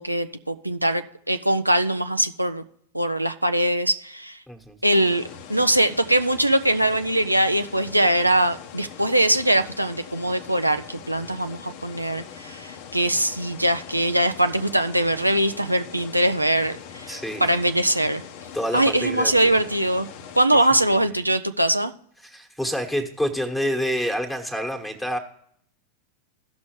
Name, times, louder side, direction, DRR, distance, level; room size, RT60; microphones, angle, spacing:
voice 1, 0.0-2.6 2.9-4.4 4.8-18.2 18.7-20.1 20.3-21.9, right 1 dB, 85° right, 8 dB, 0.4 m, -22 dB
voice 2, 4.5-4.8 17.1-17.4 18.5-19.5 20.9-21.0 22.2-25.2, equal, 5° left, 4 dB, 1.4 m, -28 dB
sound 1, 4.9-20.5, left 7 dB, 50° left, 0.9 m, -42 dB
16.0 x 6.2 x 3.0 m, 0.65 s
figure-of-eight pair, 90°, 0 cm